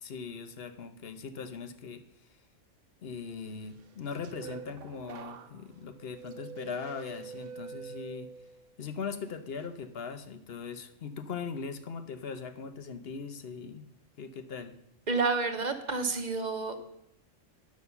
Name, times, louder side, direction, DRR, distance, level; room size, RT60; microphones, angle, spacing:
voice 1, 0.0-2.0 3.0-8.3 8.8-13.9 14.2-14.7, left 5 dB, 55° left, 10 dB, 1.0 m, -40 dB
sound 1, 3.8-8.8 9.2-9.7, right 6 dB, 75° right, 1.1 m, -46 dB
voice 2, 15.1-16.8, right 4 dB, 40° right, 7 dB, 1.0 m, -29 dB
9.4 x 6.6 x 6.7 m, 0.79 s
omnidirectional pair, 1.3 m